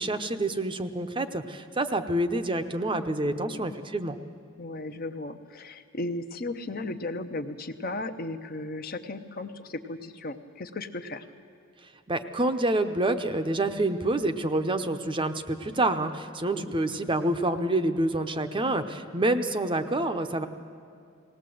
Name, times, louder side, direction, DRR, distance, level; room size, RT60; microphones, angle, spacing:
voice 1, 0.0-4.2 12.1-20.5, right 2 dB, 25° right, 8 dB, 0.7 m, -27 dB
voice 2, 3.2-3.8 4.6-11.3 16.5-16.7, left 2 dB, 45° left, 8 dB, 0.8 m, -36 dB
19.5 x 18.0 x 7.7 m, 2.4 s
head